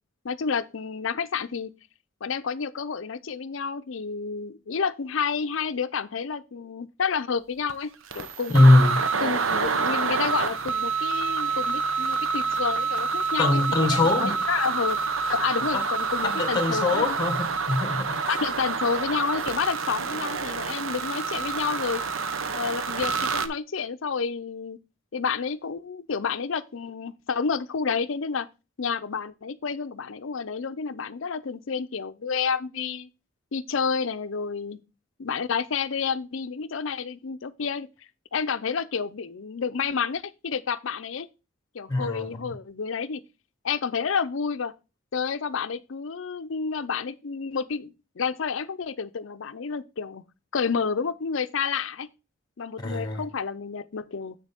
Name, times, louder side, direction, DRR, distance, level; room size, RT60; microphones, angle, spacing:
voice 1, 0.2-1.7 2.2-8.7 9.2-15.0 15.3-17.1 18.3-22.0 22.5-24.8 25.1-28.5 28.8-33.1 33.5-34.8 35.2-37.9 38.3-41.3 41.7-43.2 43.6-44.7 45.1-50.2 50.5-52.1 52.6-54.4, left 5 dB, 70° left, 0.5 m, -30 dB
sound 1, 7.7-7.8 8.1-23.5, right 5 dB, 75° right, 0.8 m, -27 dB
voice 2, 8.5-9.0 13.4-14.4 15.7-15.8 16.2-18.2 41.9-42.5 52.8-53.2, left 2 dB, 20° left, 1.4 m, -22 dB
7.7 x 6.5 x 3.5 m
head